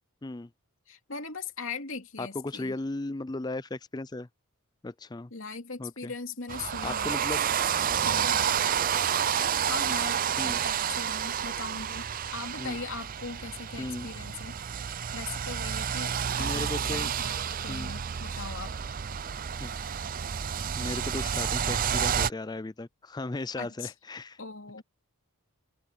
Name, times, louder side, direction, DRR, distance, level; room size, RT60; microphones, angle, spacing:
voice 1, 0.9-2.8 5.3-7.2 8.0-8.4 9.7-10.2 10.6-14.6 15.1-18.7 23.5-23.9 24.4-24.8, left 4 dB, 60° left, 2.9 m, -40 dB
voice 2, 2.2-4.3 4.8-5.3 5.8-6.1 6.8-7.4 8.2-8.4 10.4-10.6 12.6-12.8 13.8-14.1 16.4-17.1 17.7-17.9 19.6-19.7 20.8-24.4, left 2 dB, 20° left, 0.4 m, -36 dB
sound 1, 6.5-22.3, right 8 dB, 40° right, 0.5 m, -30 dB
head